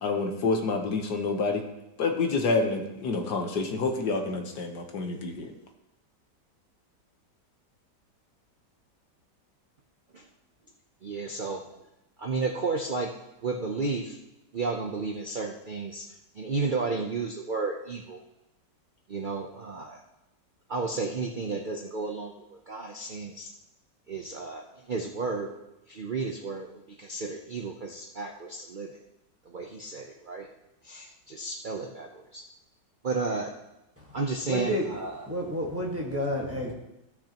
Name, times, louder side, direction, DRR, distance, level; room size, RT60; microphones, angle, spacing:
voice 1, 0.0-1.6 2.0-5.5, left 3 dB, 70° left, 4 dB, 1.6 m, -28 dB
voice 2, 11.0-11.6 12.2-13.1 13.4-14.2 14.5-16.0 16.4-18.2 19.1-20.0 20.7-23.5 24.1-25.5 25.9-26.7 27.0-29.0 29.5-30.5 30.8-32.4 33.0-33.5 34.1-35.3, right 4 dB, 75° right, 2 dB, 0.4 m, -32 dB
voice 3, 34.5-34.8 35.3-36.7, equal, 10° right, -2 dB, 1.3 m, -30 dB
15.5 x 6.1 x 2.9 m, 0.94 s
omnidirectional pair, 1.9 m